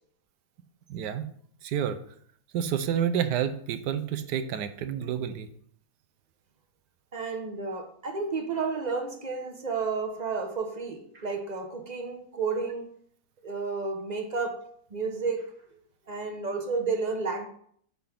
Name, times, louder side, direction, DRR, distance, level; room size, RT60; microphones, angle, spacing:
voice 1, 0.9-1.3 1.6-2.0 2.5-5.5, right 9 dB, 80° right, 11 dB, 1.3 m, -29 dB
voice 2, 7.1-12.9 13.4-14.6 14.9-15.5 16.1-17.4, right 4 dB, 30° right, 4 dB, 0.9 m, -31 dB
8.7 x 3.6 x 5.9 m, 0.64 s
omnidirectional pair, 1.8 m